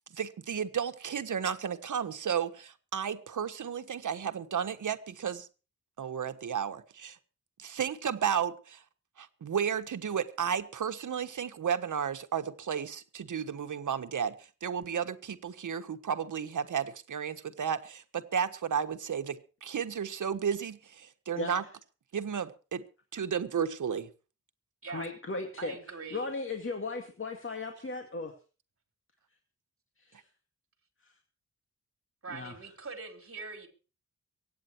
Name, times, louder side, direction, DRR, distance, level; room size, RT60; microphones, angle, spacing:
voice 1, 0.1-5.5 6.0-7.2 7.6-8.8 9.2-21.6 22.1-22.8 23.1-24.1, right 7 dB, 75° right, 9 dB, 1.4 m, -33 dB
voice 2, 24.9-28.3 30.0-30.2 31.0-31.1 32.3-32.6, left 3 dB, 40° left, 4 dB, 2.2 m, -37 dB
voice 3, 25.6-26.3 32.2-33.7, right 4 dB, 45° right, 6 dB, 3.8 m, -42 dB
23.5 x 9.1 x 4.5 m, 0.35 s
wide cardioid pair, 95°, 30 cm